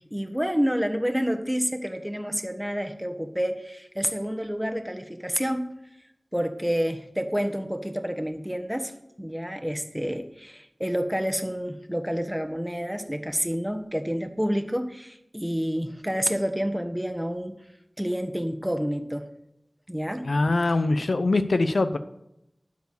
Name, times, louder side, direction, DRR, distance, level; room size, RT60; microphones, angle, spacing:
voice 1, 0.1-5.7 6.3-8.9 9.2-17.5 18.0-19.3 19.9-20.3, equal, 5° right, 7 dB, 1.2 m, -29 dB
voice 2, 20.3-22.0, left 2 dB, 85° left, 10 dB, 0.6 m, -23 dB
12.5 x 4.7 x 8.4 m, 0.84 s
wide cardioid pair, 45°, 0 cm